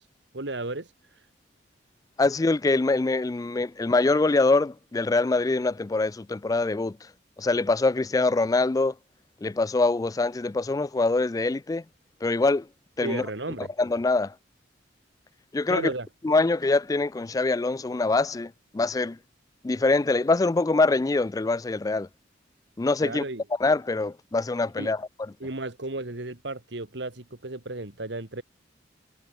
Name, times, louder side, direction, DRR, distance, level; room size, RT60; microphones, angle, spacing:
voice 1, 0.3-0.9 13.0-13.7 15.7-16.1 23.0-23.4 24.8-24.9 25.4-28.4, right 2 dB, 65° right, 1.9 m, -34 dB
voice 2, 2.2-7.0 7.4-8.9 9.4-11.8 12.2-12.7 13.0-13.2 13.6-14.3 15.5-15.9 16.2-19.2 19.6-22.1 22.8-23.2 23.6-25.0, left 3 dB, 20° left, 0.3 m, -24 dB
head